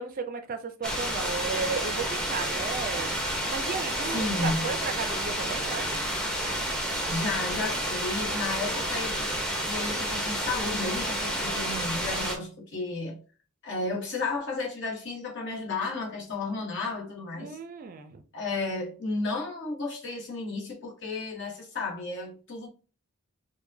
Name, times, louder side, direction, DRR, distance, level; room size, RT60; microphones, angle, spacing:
voice 1, 0.0-6.0 17.4-18.2, right 4 dB, 40° right, 0.4 m, -34 dB
sound 1, 0.8-12.4, equal, 5° left, 0.6 m, -30 dB
voice 2, 4.1-4.7 7.1-9.4 9.6-13.2 13.6-17.6 18.3-22.7, left 3 dB, 55° left, 1.2 m, -33 dB
4.6 x 2.1 x 2.6 m
head